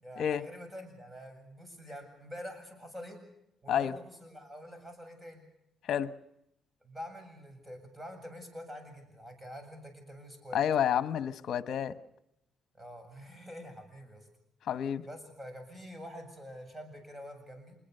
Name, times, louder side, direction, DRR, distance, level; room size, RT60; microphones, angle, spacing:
voice 1, 0.0-3.2 3.6-5.4 6.8-10.6 12.7-14.3 15.0-17.8, equal, 15° right, 6 dB, 7.9 m, -46 dB
voice 2, 10.5-12.0 14.7-15.0, left 9 dB, 65° left, 13 dB, 1.1 m, -29 dB
26.5 x 21.5 x 6.7 m, 0.81 s
cardioid pair, 90°, 0 cm